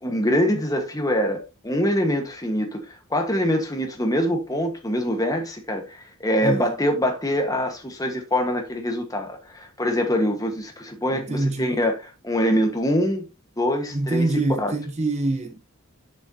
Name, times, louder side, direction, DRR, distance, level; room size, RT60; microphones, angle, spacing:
voice 1, 0.0-2.8 3.1-13.2 13.6-14.7, equal, 15° left, 1.4 m, -24 dB
voice 2, 6.4-6.7 11.1-11.9 13.9-15.6, right 2 dB, 30° right, 0.9 m, -25 dB
8.0 x 6.8 x 2.8 m
head